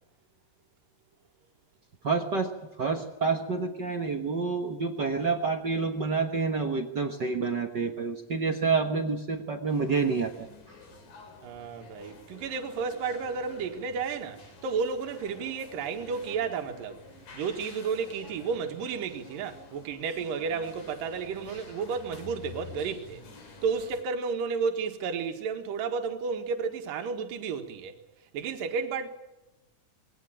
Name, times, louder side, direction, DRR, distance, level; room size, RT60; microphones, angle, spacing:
voice 1, 2.0-2.5 2.8-10.8, right 4 dB, 55° right, 1.2 m, -28 dB
sound 1, 9.7-24.0, left 4 dB, 70° left, 4.8 m, -49 dB
voice 2, 11.4-17.0 17.3-23.2 23.6-27.9 28.3-29.1, right 5 dB, 75° right, 3.2 m, -32 dB
22.0 x 18.0 x 8.8 m
omnidirectional pair, 4.0 m